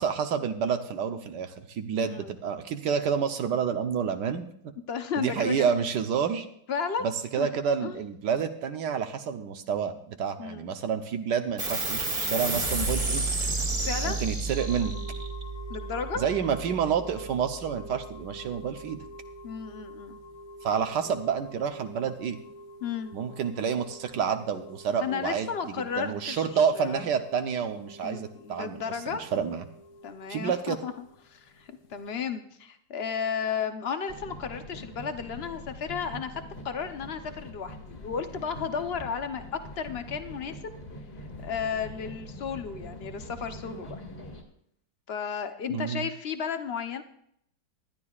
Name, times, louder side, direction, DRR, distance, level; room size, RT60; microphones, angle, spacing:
voice 1, 0.0-4.5 5.2-6.5 7.0-13.3 14.0-15.0 16.2-19.0 20.6-22.4 23.1-25.5 26.0-28.8 29.1-29.6 30.3-30.8 45.7-46.1, right 7 dB, 70° right, 7 dB, 1.4 m, -29 dB
voice 2, 2.0-2.3 4.9-5.7 6.7-7.1 7.4-7.5 7.8-8.0 10.4-10.7 13.8-14.2 15.7-16.2 19.4-20.2 22.8-23.1 25.0-27.1 28.0-29.2 30.0-30.9 31.2-40.8 41.4-44.0 45.1-47.0, left 6 dB, 55° left, 8 dB, 0.7 m, -33 dB
sound 1, 11.6-18.5, right 3 dB, 30° right, 1.8 m, -32 dB
sound 2, 14.5-32.2, left 1 dB, 90° left, 1.8 m, -48 dB
sound 3, 34.1-44.4, equal, 35° left, 2.0 m, -43 dB
19.5 x 12.0 x 2.4 m, 0.71 s
omnidirectional pair, 2.0 m